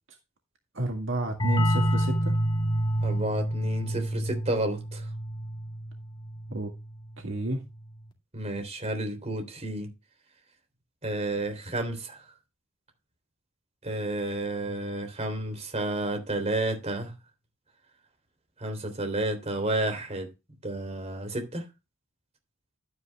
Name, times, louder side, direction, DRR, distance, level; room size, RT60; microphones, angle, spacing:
voice 1, 0.7-2.4 6.5-6.7 7.2-7.6, right 2 dB, 65° right, 1.9 m, -31 dB
sound 1, 1.4-6.8, right 1 dB, 25° left, 2.2 m, -28 dB
voice 2, 3.0-5.0 8.3-9.9 11.0-12.2 13.8-17.1 18.6-20.3 20.6-21.6, right 2 dB, 30° right, 3.3 m, -31 dB
12.5 x 9.6 x 2.3 m
head